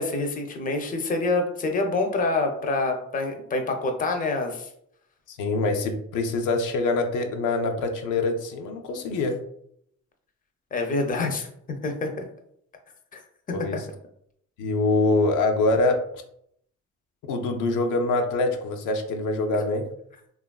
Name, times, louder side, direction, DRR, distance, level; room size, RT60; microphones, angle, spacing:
voice 1, 0.0-4.7 10.7-12.3 13.1-13.2, left 3 dB, 30° left, 4 dB, 0.5 m, -26 dB
voice 2, 5.3-9.4 13.5-13.9 14.6-16.0 17.3-19.8, left 2 dB, 85° left, 3 dB, 0.5 m, -24 dB
3.0 x 2.4 x 2.2 m, 0.70 s
cardioid pair, 90°, 30 cm